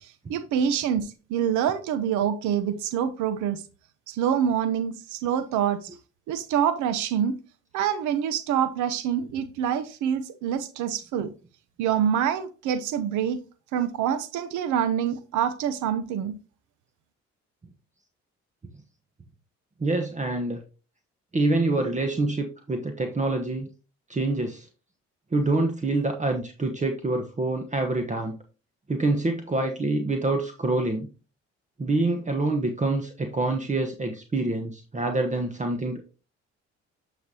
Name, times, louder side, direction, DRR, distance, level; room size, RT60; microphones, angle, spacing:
voice 1, 0.3-3.6 4.1-5.9 6.3-7.4 7.7-11.3 11.8-13.4 13.7-16.4, right 9 dB, 85° right, 0.8 m, -26 dB
voice 2, 19.8-20.6 21.3-23.7 24.1-24.7 25.3-28.4 28.9-31.1 31.8-36.0, right 2 dB, 25° right, 1.1 m, -26 dB
9.4 x 5.2 x 2.8 m
supercardioid pair, 65°, 29 cm